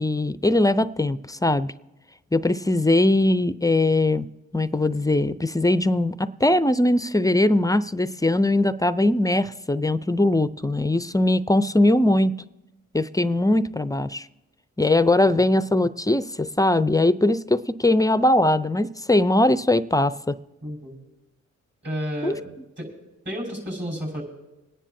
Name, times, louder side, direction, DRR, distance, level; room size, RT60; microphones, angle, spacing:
voice 1, 0.0-1.7 2.3-4.3 4.5-12.3 12.9-14.3 14.8-20.4 22.2-22.3, left 1 dB, 10° left, 14 dB, 0.4 m, -21 dB
voice 2, 20.6-20.9 21.8-22.5 22.8-22.9 23.3-24.2, equal, 35° right, -3 dB, 5.5 m, -31 dB
26.0 x 10.0 x 2.7 m, 1.0 s
supercardioid pair, 55°, 31 cm